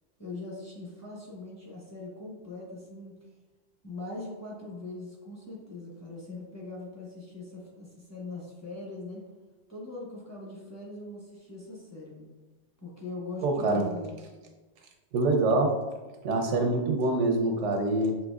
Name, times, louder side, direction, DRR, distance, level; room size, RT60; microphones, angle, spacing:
voice 1, 0.2-3.2 3.8-9.2 9.7-12.3 12.8-14.2, left 2 dB, 15° left, -4 dB, 0.8 m, -41 dB
voice 2, 13.4-13.9 15.1-15.8 16.2-18.2, right 2 dB, 85° right, 4 dB, 1.0 m, -25 dB
6.3 x 2.7 x 2.4 m, 1.2 s
omnidirectional pair, 1.2 m